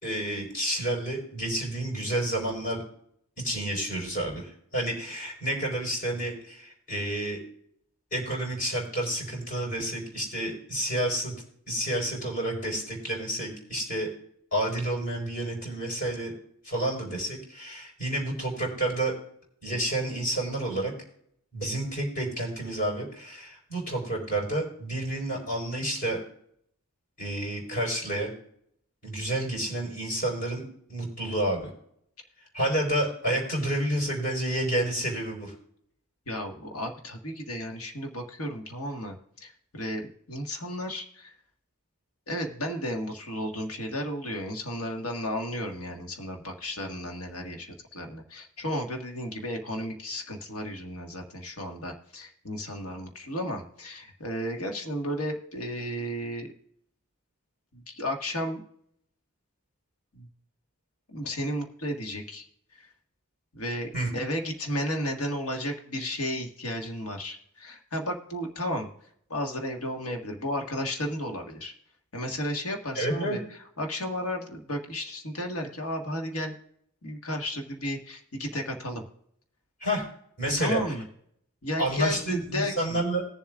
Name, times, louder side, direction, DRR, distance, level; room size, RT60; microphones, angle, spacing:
voice 1, 0.0-2.8 3.4-7.4 8.1-11.4 11.7-14.1 14.5-16.3 16.6-19.1 19.6-20.9 21.5-26.2 27.2-28.3 29.0-30.6 30.9-31.7 32.5-35.5 63.9-64.1 72.9-73.4 79.8-80.0 80.4-80.8 81.8-83.3, right 1 dB, 40° left, -1 dB, 4.3 m, -29 dB
voice 2, 36.3-41.3 42.3-56.5 57.7-58.6 60.1-60.3 61.1-62.4 63.5-68.9 69.3-71.7 72.1-73.4 73.8-76.5 77.0-79.0 80.6-81.0 81.6-83.0, equal, 70° left, 2 dB, 1.6 m, -33 dB
20.5 x 7.2 x 2.4 m, 0.69 s
head